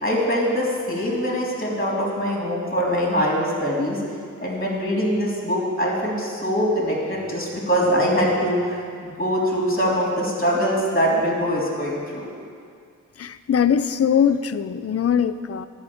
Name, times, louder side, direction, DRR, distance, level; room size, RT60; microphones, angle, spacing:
voice 1, 0.0-4.0 4.4-12.3, equal, 25° left, -4 dB, 3.1 m, -23 dB
voice 2, 13.2-15.7, left 8 dB, 45° left, 13 dB, 0.5 m, -21 dB
10.5 x 5.4 x 8.5 m, 2.2 s
cardioid pair, 55°, 33 cm